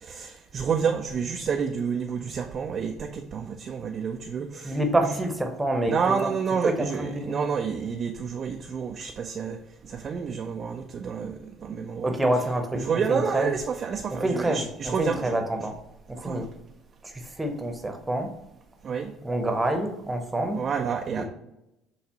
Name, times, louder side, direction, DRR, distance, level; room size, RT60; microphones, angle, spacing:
voice 1, 0.0-4.7 5.9-9.6 9.8-12.1 12.8-15.4 16.2-16.4 18.8-19.1 20.6-21.2, right 6 dB, 40° right, 3 dB, 0.4 m, -29 dB
voice 2, 4.6-6.3 6.6-7.5 12.0-13.6 14.1-15.8 16.1-16.5 17.0-18.3 19.0-20.7 21.1-21.3, right 1 dB, 10° right, 4 dB, 0.9 m, -27 dB
6.7 x 2.4 x 2.9 m, 0.88 s
figure-of-eight pair, 55°, 0 cm